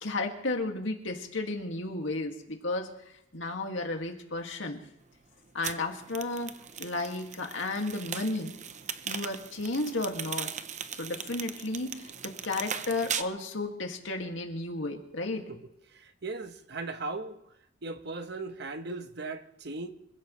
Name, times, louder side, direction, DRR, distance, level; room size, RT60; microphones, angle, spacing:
voice 1, 0.0-2.9 3.3-4.8 5.5-6.5 6.8-8.5 9.1-10.5 11.0-15.4, left 2 dB, 80° left, 2.3 m, -33 dB
sound 1, 5.6-13.2, right 8 dB, 40° right, 0.7 m, -39 dB
voice 2, 15.5-17.4 17.8-19.9, right 3 dB, 60° right, 1.2 m, -38 dB
26.0 x 16.0 x 3.3 m
head